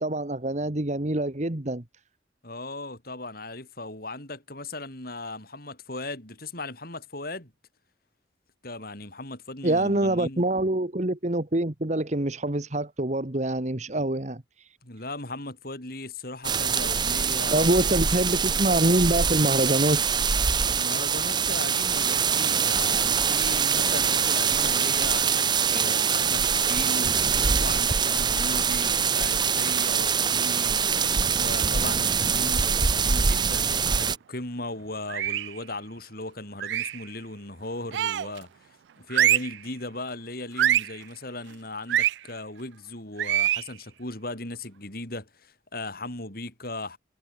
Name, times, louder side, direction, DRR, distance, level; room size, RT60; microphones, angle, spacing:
voice 1, 0.0-1.8 9.6-14.7 17.5-20.0, right 1 dB, 40° right, 1.5 m, -25 dB
voice 2, 2.4-7.5 8.6-10.4 14.8-17.9 20.7-27.2 27.6-30.9 31.3-38.5 39.0-47.0, left 2 dB, 55° left, 7.1 m, -37 dB
sound 1, 16.4-34.2, right 6 dB, 25° right, 0.7 m, -24 dB
sound 2, 19.6-24.8, left 1 dB, 20° left, 7.4 m, -54 dB
sound 3, 35.1-35.6 36.6-37.0 37.9-38.4 39.1-39.6 40.6-41.0 41.9-42.2 43.2-43.7, right 11 dB, 70° right, 0.3 m, -24 dB
head